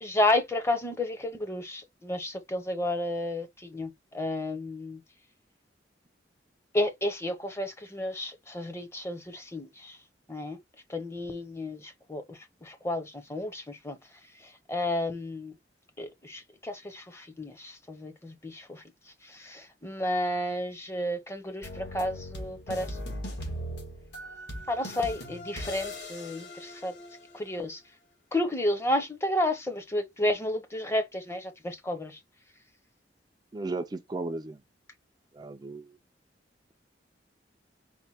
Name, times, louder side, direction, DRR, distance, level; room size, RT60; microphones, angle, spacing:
voice 1, 0.0-5.0 6.7-10.0 10.3-10.6 10.9-14.0 14.7-15.5 16.0-18.8 19.3-23.0 24.7-26.9 27.3-27.8 28.3-32.2, left 1 dB, 15° left, 0.7 m, -31 dB
sound 1, 21.6-27.4, equal, 65° left, 1.5 m, -39 dB
voice 2, 33.5-34.6 35.3-36.0, right 3 dB, 20° right, 0.3 m, -35 dB
4.4 x 2.2 x 4.1 m
head